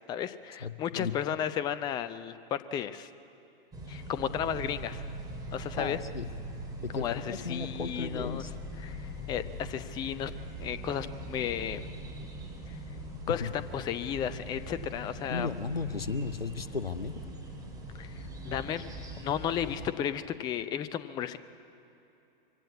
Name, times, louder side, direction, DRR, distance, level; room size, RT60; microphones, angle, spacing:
voice 1, 0.1-3.1 3.9-5.0 5.5-6.0 6.9-8.4 8.8-10.3 10.6-11.9 13.3-15.5 18.0-18.8 19.2-21.4, left 9 dB, 15° left, 14 dB, 0.5 m, -34 dB
voice 2, 0.6-1.1 5.8-6.3 6.8-8.5 13.3-13.5 15.3-17.1, left 4 dB, 90° left, 13 dB, 0.9 m, -35 dB
sound 1, 3.7-19.9, right 1 dB, 10° right, 3.3 m, -41 dB
23.0 x 16.5 x 8.4 m, 3.0 s
figure-of-eight pair, 105°, 29 cm